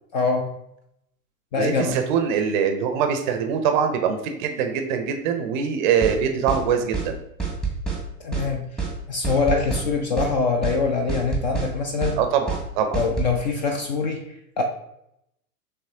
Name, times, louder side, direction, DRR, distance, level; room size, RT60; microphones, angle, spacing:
voice 1, 0.1-0.5 1.5-2.0 8.2-8.7 9.1-12.2 12.9-14.6, left 4 dB, 35° left, 4 dB, 0.4 m, -24 dB
voice 2, 1.5-7.2 12.2-13.0, right 7 dB, 35° right, 6 dB, 0.5 m, -23 dB
sound 1, 6.0-6.2 6.5-6.6 6.9-7.1 7.4-8.0 8.3-8.5 8.8-8.9 9.2-9.9 10.2-10.3 10.6-10.8 11.1-11.7 12.0-12.2 12.5-12.6 12.9-13.3, right 5 dB, ahead, 0.9 m, -27 dB
5.8 x 3.1 x 2.7 m, 0.79 s
figure-of-eight pair, 100°, 45 cm